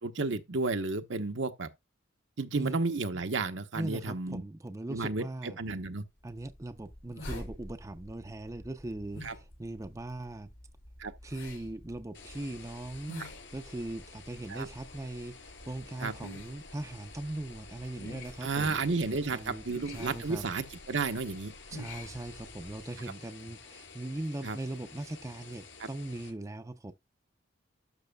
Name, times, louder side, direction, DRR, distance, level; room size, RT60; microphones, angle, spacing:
voice 1, 0.0-1.7 2.4-4.4 4.9-6.0 9.2-9.3 11.0-11.1 13.2-13.3 14.5-14.7 16.0-16.1 18.4-21.5 24.4-24.6 25.8-25.9, right 3 dB, 65° right, 0.9 m, -32 dB
voice 2, 3.7-5.6 6.2-10.5 11.2-13.1 13.5-15.4 15.7-18.8 19.3-20.4 21.7-26.9, right 1 dB, 15° right, 0.5 m, -40 dB
sound 1, 6.3-22.9, left 1 dB, 90° left, 6.0 m, -48 dB
sound 2, 12.1-26.3, left 4 dB, 70° left, 4.7 m, -51 dB
12.0 x 6.2 x 2.2 m
head